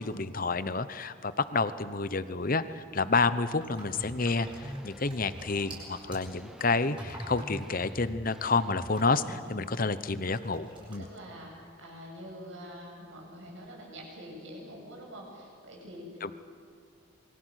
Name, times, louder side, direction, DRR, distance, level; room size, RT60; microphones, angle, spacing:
voice 1, 0.0-11.0 16.2-16.3, left 3 dB, 40° left, 13 dB, 0.9 m, -29 dB
sound 1, 3.5-9.9 10.3-10.9, right 1 dB, 25° right, 7.1 m, -49 dB
sound 2, 4.0-9.0, equal, ahead, 0.7 m, -44 dB
voice 2, 9.2-9.6 11.0-11.5 11.8-16.3, equal, 65° right, -1 dB, 7.5 m, -45 dB
27.5 x 23.5 x 6.5 m, 2.4 s
head